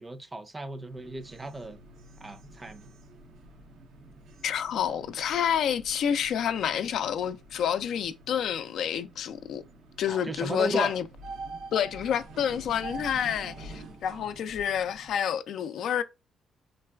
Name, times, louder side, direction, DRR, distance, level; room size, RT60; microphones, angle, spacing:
voice 1, 0.0-1.8 2.2-2.9 10.1-11.0 14.1-14.3, right 2 dB, 20° right, 0.5 m, -35 dB
sound 1, 0.7-15.2, right 2 dB, 85° right, 0.7 m, -47 dB
voice 2, 4.4-9.6 10.0-11.1 11.7-16.0, left 8 dB, 70° left, 0.3 m, -29 dB
3.7 x 2.4 x 2.3 m
cardioid pair, 90°, 0 cm